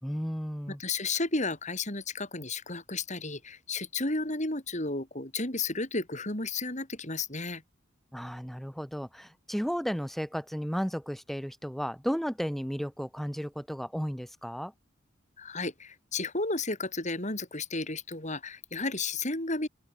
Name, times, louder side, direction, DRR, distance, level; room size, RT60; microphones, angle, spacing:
voice 1, 0.0-0.8 8.1-14.7, equal, ahead, 3.8 m, -34 dB
voice 2, 0.8-7.6 15.4-19.7, left 3 dB, 40° left, 7.9 m, -33 dB
open air
head